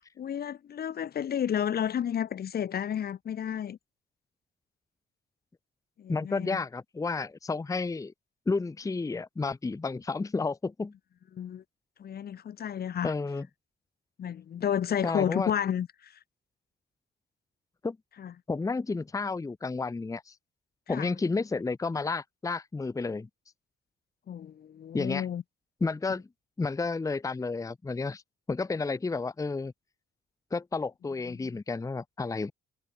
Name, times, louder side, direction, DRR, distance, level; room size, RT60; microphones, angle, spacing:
voice 1, 0.2-3.8 6.0-6.6 11.3-11.6 12.0-13.1 14.2-16.2 18.2-18.3 20.9-21.1 24.3-25.4 31.3-31.5, left 9 dB, 50° left, 1.0 m, -31 dB
voice 2, 6.1-8.1 8.5-10.9 13.0-13.5 15.0-15.5 17.8-18.0 18.5-20.3 20.9-23.3 24.9-25.3 25.8-26.3 26.6-28.2 28.5-29.7 30.5-32.5, left 4 dB, 15° left, 0.7 m, -31 dB
cardioid pair, 90°, 20 cm